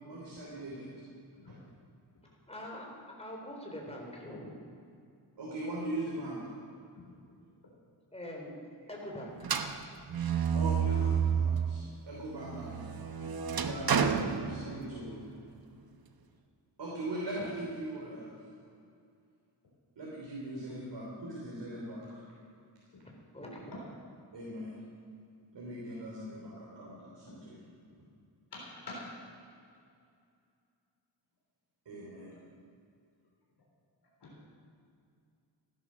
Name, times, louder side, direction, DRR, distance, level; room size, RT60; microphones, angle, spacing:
voice 1, 0.0-0.9 1.5-1.6 5.4-6.4 8.8-8.9 10.5-12.8 13.6-15.2 16.8-18.3 19.9-22.2 24.3-24.8 25.5-27.6 31.8-32.3, right 1 dB, 75° right, -5 dB, 3.4 m, -40 dB
voice 2, 2.5-2.9 3.2-4.6 8.1-8.6 8.9-9.4 14.1-14.3 23.0-23.7, left 1 dB, 15° left, -1 dB, 3.6 m, -43 dB
sound 1, 9.4-11.8 12.3-15.1, right 7 dB, 55° right, 1.0 m, -30 dB
voice 3, 28.5-29.1 34.2-34.5, left 2 dB, 65° left, -4 dB, 3.7 m, -46 dB
15.5 x 11.0 x 6.3 m, 2.4 s
wide cardioid pair, 95°, 42 cm